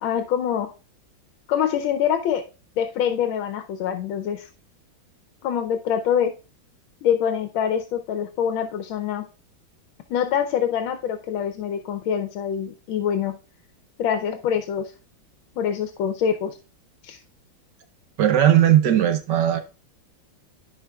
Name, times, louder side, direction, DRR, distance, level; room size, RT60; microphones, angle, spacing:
voice 1, 0.0-0.7 1.5-2.4 2.8-4.5 5.4-6.3 7.0-9.2 10.1-13.4 14.0-14.9 15.6-16.6 17.0-17.2, left 8 dB, 80° left, 1.4 m, -25 dB
voice 2, 18.2-19.6, right 11 dB, 65° right, 1.4 m, -17 dB
13.5 x 5.0 x 2.3 m
omnidirectional pair, 2.2 m